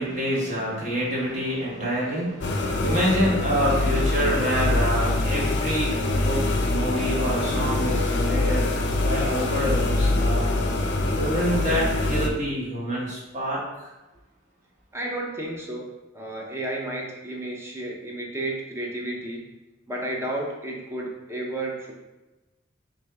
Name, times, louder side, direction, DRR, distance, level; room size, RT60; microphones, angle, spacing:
voice 1, 0.0-10.6 11.1-13.9, equal, 40° right, -5 dB, 1.3 m, -27 dB
sound 1, 2.4-12.3, left 2 dB, 65° left, 0.5 m, -24 dB
voice 2, 14.9-15.9 16.1-19.5 19.9-21.9, right 1 dB, 15° right, -1 dB, 0.7 m, -32 dB
4.4 x 2.7 x 3.4 m, 1.1 s
head